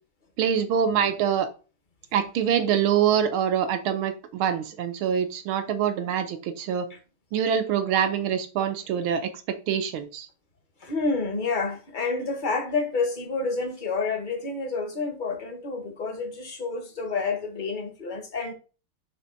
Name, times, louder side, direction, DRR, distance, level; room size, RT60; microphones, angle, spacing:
voice 1, 0.4-1.5 2.1-6.9 7.3-10.3, right 8 dB, 75° right, 1.7 m, -25 dB
voice 2, 10.8-18.5, left 4 dB, 30° left, 1.1 m, -29 dB
5.9 x 3.5 x 5.2 m
omnidirectional pair, 2.3 m